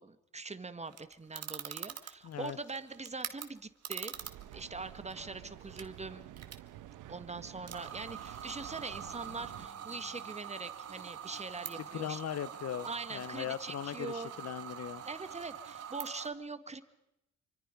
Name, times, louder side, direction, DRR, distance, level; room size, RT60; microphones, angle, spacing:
voice 1, 0.0-4.2 4.5-6.3 7.1-12.2 12.8-14.3 15.0-16.8, right 3 dB, 20° right, 11 dB, 1.9 m, -42 dB
sound 1, 0.9-3.4 3.8-4.6 4.9-5.1 5.6-5.8 6.4-6.5 6.9-7.0 7.7-16.3, right 9 dB, 55° right, 2.1 m, -44 dB
voice 2, 2.2-2.6 11.9-15.0, left 10 dB, 55° left, 18 dB, 0.9 m, -39 dB
Mechanical fan, 4.1-9.7, right 13 dB, 90° right, 1.3 m, -50 dB
sound 2, 8.7-15.8, equal, 30° left, 6.8 m, -63 dB
28.0 x 25.0 x 5.3 m, 0.85 s
cardioid pair, 90°, 30 cm